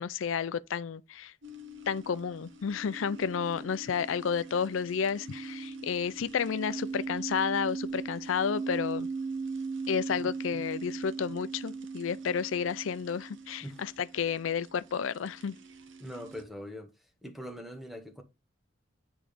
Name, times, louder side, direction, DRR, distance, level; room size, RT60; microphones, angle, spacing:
voice 1, 0.0-1.3 1.9-9.1 9.9-15.6, left 7 dB, 90° left, 0.4 m, -31 dB
sound 1, 1.4-16.4, right 4 dB, 75° right, 1.0 m, -40 dB
voice 2, 16.0-16.9 17.2-18.2, equal, ahead, 1.1 m, -42 dB
8.9 x 3.7 x 5.1 m
head